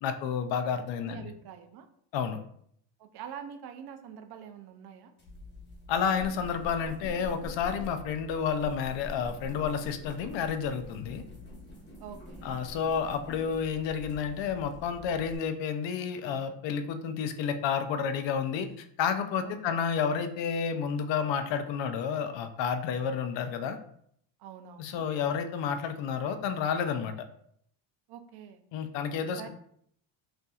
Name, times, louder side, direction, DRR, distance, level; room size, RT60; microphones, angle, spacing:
voice 1, 0.0-1.3 2.1-2.4 5.9-11.2 12.4-23.8 24.8-27.1 28.7-29.5, left 7 dB, 70° left, 8 dB, 0.6 m, -30 dB
voice 2, 1.0-1.9 3.0-5.1 12.0-12.5 19.4-19.8 24.4-25.0 28.1-28.6 29.3-29.5, right 8 dB, 55° right, 8 dB, 0.5 m, -45 dB
sound 1, 5.2-15.4, left 1 dB, 25° left, 1.2 m, -45 dB
5.5 x 2.6 x 2.3 m, 0.67 s
cardioid pair, 135°, 47 cm